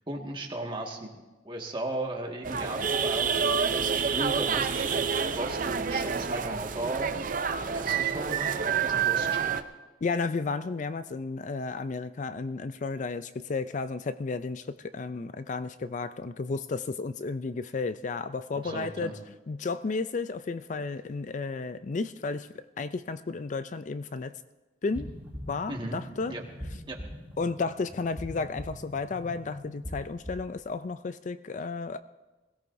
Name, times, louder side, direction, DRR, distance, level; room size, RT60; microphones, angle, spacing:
voice 1, 0.1-7.3 7.6-9.5 18.5-19.1 25.7-26.0 26.3-26.4 26.9-27.0, right 1 dB, 30° right, 0 dB, 1.8 m, -36 dB
sound 1, 2.4-9.6, right 6 dB, 50° right, 0.6 m, -28 dB
voice 2, 10.0-19.1 19.5-22.5 22.8-24.3 24.8-25.1 25.5-26.4 27.4-32.0, left 4 dB, 45° left, 12 dB, 0.4 m, -33 dB
sound 2, 24.9-30.6, equal, 10° right, 2.7 m, -42 dB
22.0 x 16.5 x 2.7 m, 1.2 s
head